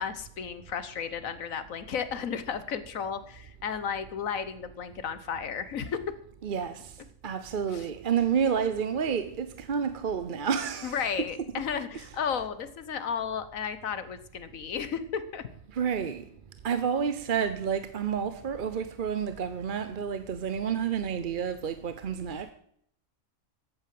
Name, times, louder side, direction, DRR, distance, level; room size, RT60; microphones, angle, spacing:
voice 1, 0.0-6.0 7.7-7.8 10.8-15.5, left 7 dB, 80° left, 1.5 m, -33 dB
voice 2, 6.4-6.9 7.2-11.0 11.5-11.7 11.9-12.1 15.7-16.2 16.6-22.5, right 7 dB, 45° right, 0.8 m, -30 dB
14.5 x 8.9 x 7.6 m
omnidirectional pair, 1.4 m